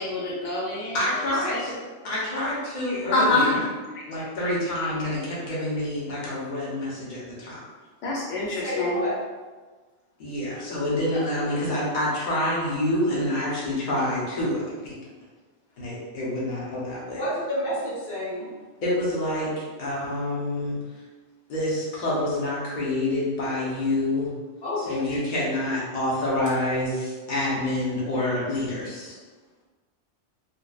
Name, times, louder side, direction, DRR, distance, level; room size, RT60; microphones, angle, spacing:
voice 1, 0.0-1.0 1.5-1.6 2.9-3.6 3.9-4.0 8.0-9.0, left 2 dB, 85° left, -4 dB, 0.9 m, -25 dB
voice 2, 0.9-1.8 2.0-3.6 4.1-7.6 10.2-14.9 15.8-17.2 18.8-20.8 21.5-24.3 24.9-29.1, left 1 dB, 50° left, -7 dB, 0.8 m, -27 dB
voice 3, 8.5-9.2 17.2-18.5 24.6-25.1, equal, 65° left, -7 dB, 1.1 m, -29 dB
2.7 x 2.1 x 2.2 m, 1.3 s
omnidirectional pair, 1.2 m